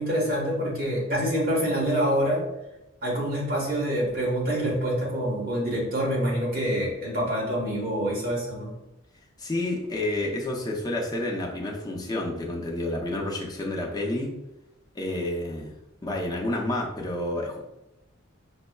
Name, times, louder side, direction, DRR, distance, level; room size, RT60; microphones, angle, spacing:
voice 1, 0.0-2.4 3.0-8.7, equal, 50° right, -4 dB, 1.3 m, -26 dB
voice 2, 9.4-14.3 14.9-15.7 16.0-17.6, left 1 dB, 20° left, -1 dB, 0.6 m, -29 dB
5.2 x 2.0 x 2.3 m, 0.94 s
head